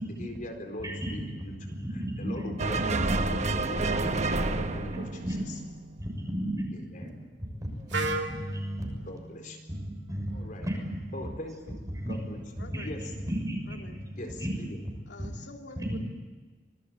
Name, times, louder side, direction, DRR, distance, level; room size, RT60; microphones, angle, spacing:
voice 1, 0.0-1.5 2.2-3.0 3.5-3.9 4.4-5.0 6.7-7.1 8.1-8.2 9.1-9.6 10.3-10.7 11.1-11.8 12.1-12.4 12.8-13.0 14.2-14.8, left 1 dB, 50° left, 3 dB, 4.3 m, -41 dB
voice 2, 0.8-2.4 2.9-3.6 3.9-4.6 4.9-5.3 6.0-7.1 7.8-8.9 9.7-10.3 10.6-11.3 11.9-12.4 12.7-14.9 15.8-16.0, equal, 20° right, 2 dB, 6.6 m, -35 dB
sound 1, 2.6-6.1, right 3 dB, 40° right, 1.2 m, -30 dB
Wind instrument woodwind instrument, 7.9-11.8, right 2 dB, 75° right, 2.6 m, -38 dB
voice 3, 12.6-13.0 13.6-14.0 15.1-16.0, left 2 dB, 75° left, 3 dB, 2.6 m, -47 dB
25.5 x 19.5 x 8.8 m, 1.4 s
head